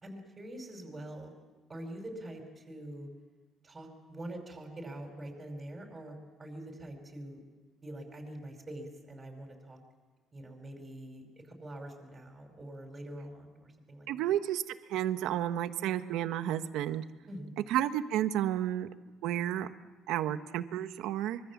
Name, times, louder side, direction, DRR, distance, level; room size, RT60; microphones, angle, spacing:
voice 1, 0.0-1.3 1.7-3.1 3.6-7.4 7.8-9.8 10.3-14.1 17.3-17.6, right 1 dB, 15° right, 2 dB, 5.3 m, -44 dB
voice 2, 14.1-14.6 14.9-17.0 17.7-18.9 19.2-19.7 20.1-21.4, right 11 dB, 75° right, 10 dB, 1.2 m, -31 dB
25.5 x 24.0 x 7.3 m, 1.3 s
cardioid pair, 150°, 0 cm